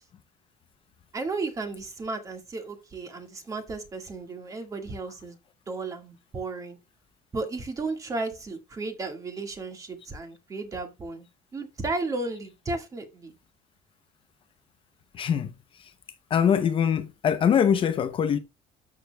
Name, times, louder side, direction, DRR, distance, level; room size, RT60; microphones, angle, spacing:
voice 1, 1.1-5.4 5.7-6.8 7.3-11.3 11.5-13.3, right 3 dB, 25° right, 1.8 m, -34 dB
voice 2, 15.2-15.5 16.3-18.4, left 8 dB, 40° left, 0.7 m, -23 dB
12.5 x 6.5 x 2.2 m
cardioid pair, 150°, 14 cm